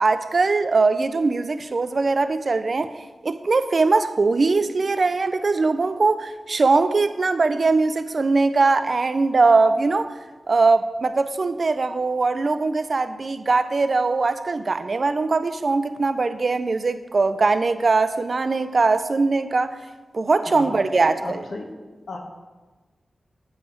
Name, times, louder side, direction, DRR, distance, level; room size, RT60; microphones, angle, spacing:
voice 1, 0.0-2.9 3.2-10.2 10.5-19.8 20.1-21.4, right 3 dB, 50° right, 12 dB, 0.4 m, -21 dB
voice 2, 20.3-20.9 21.2-21.8 22.1-22.2, left 2 dB, 75° left, 2 dB, 1.1 m, -35 dB
8.8 x 5.6 x 4.3 m, 1.3 s
wide cardioid pair, 115°, 0 cm